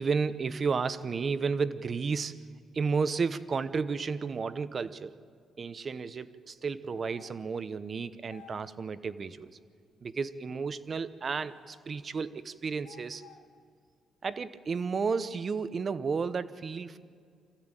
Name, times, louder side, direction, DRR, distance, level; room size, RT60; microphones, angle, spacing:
voice 1, 0.0-2.4 2.7-5.2 5.6-9.6 10.0-13.2 14.2-17.0, right 5 dB, 40° right, 15 dB, 0.9 m, -32 dB
sound 1, 6.9-7.5 8.3-8.8 11.3-11.8 12.8-13.6, left 9 dB, 90° left, 1.7 m, -55 dB
25.5 x 14.5 x 9.0 m, 2.2 s
cardioid pair, 90°, 0 cm